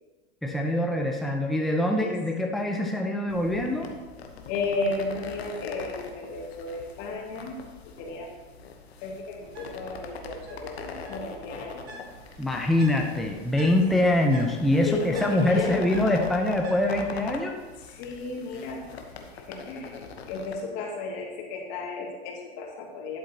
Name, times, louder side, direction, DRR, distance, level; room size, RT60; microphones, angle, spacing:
voice 1, 0.4-3.9 12.4-17.5, left 1 dB, ahead, 1 dB, 0.8 m, -24 dB
sound 1, 3.3-20.5, left 5 dB, 85° left, 1.1 m, -43 dB
voice 2, 4.5-7.6 7.9-8.3 9.0-12.0 14.9-15.8 17.9-18.9 19.5-23.2, left 3 dB, 55° left, 0 dB, 2.4 m, -34 dB
Bird, 9.4-17.2, right 3 dB, 85° right, 2.0 m, -47 dB
12.0 x 7.5 x 2.9 m, 1.3 s
hypercardioid pair, 95°, 31 cm